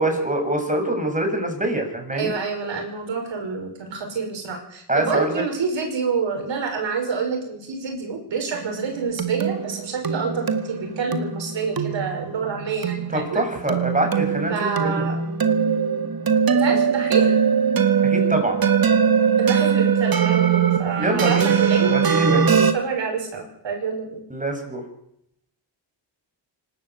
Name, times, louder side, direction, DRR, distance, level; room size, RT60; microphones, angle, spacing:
voice 1, 0.0-2.3 4.9-5.4 13.1-15.0 18.0-18.6 21.0-22.4 24.3-24.8, right 1 dB, 15° right, 4 dB, 6.7 m, -25 dB
voice 2, 2.1-13.4 14.5-15.2 16.5-17.4 19.4-21.9 22.3-24.2, right 5 dB, 80° right, 3 dB, 5.9 m, -27 dB
sound 1, 8.5-22.7, right 7 dB, 50° right, 2.1 m, -21 dB
25.5 x 12.5 x 8.4 m, 0.78 s
cardioid pair, 75°, 44 cm